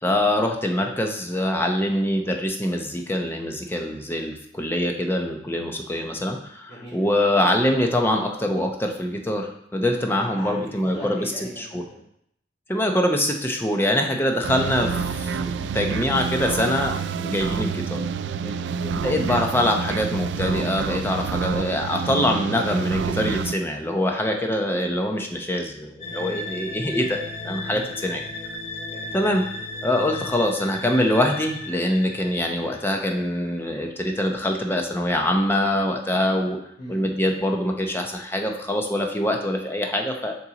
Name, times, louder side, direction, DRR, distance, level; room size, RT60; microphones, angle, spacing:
voice 1, 0.0-11.3 11.6-11.8 12.7-18.0 18.9-27.2 27.4-28.2 29.1-29.4 29.8-36.6 36.9-40.3, left 1 dB, 15° left, 2 dB, 0.7 m, -24 dB
voice 2, 6.7-7.1 9.8-10.5 10.9-12.0 18.3-18.9 26.1-26.5 27.7-27.9 28.8-29.2 36.8-37.0, left 1 dB, 65° left, -12 dB, 3.0 m, -39 dB
sound 1, 14.4-23.5, right 6 dB, 90° right, 0.3 m, -28 dB
sound 2, 26.0-33.5, left 2 dB, 40° left, 0.9 m, -35 dB
6.1 x 5.8 x 4.0 m, 0.73 s
head